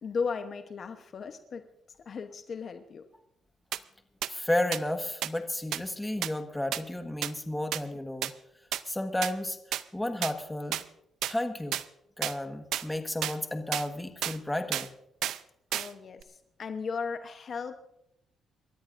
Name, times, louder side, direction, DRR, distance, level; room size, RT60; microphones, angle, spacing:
voice 1, 0.0-1.7 2.0-3.0 15.7-17.8, left 5 dB, 50° left, 8 dB, 1.0 m, -36 dB
sound 1, 3.7-3.8 4.2-4.3 4.7-4.8 5.2-5.3 5.7-5.8 6.2-6.3 6.7-6.8 7.2-7.3 7.7-7.8 8.2-8.3 8.7-8.8 9.2-9.3 9.7-9.8 10.2-10.3 10.7-10.8 11.2-11.3 11.7-11.8 12.2-12.3 12.7-12.8 13.2-13.4 13.7-13.9 14.2-14.4 14.7-14.9 15.2-15.4 15.7-15.9 16.2-16.3, right 12 dB, 80° right, 0.5 m, -31 dB
voice 2, 4.3-8.3 8.8-9.6 9.9-10.8 11.2-11.8 12.2-14.9, left 1 dB, 10° left, 6 dB, 1.5 m, -32 dB
28.0 x 13.5 x 2.6 m, 0.79 s
cardioid pair, 90°, 0 cm